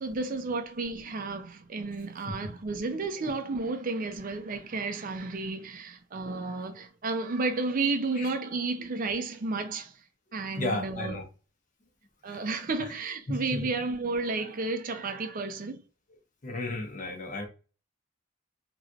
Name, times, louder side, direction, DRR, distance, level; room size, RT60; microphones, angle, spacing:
voice 1, 0.0-10.0 10.3-11.2 12.2-15.8, right 3 dB, 45° right, 0.5 m, -32 dB
voice 2, 10.6-11.3 12.3-12.4 12.8-12.9 13.3-13.7 16.4-17.5, left 2 dB, 45° left, 0.8 m, -33 dB
3.2 x 3.0 x 2.4 m
head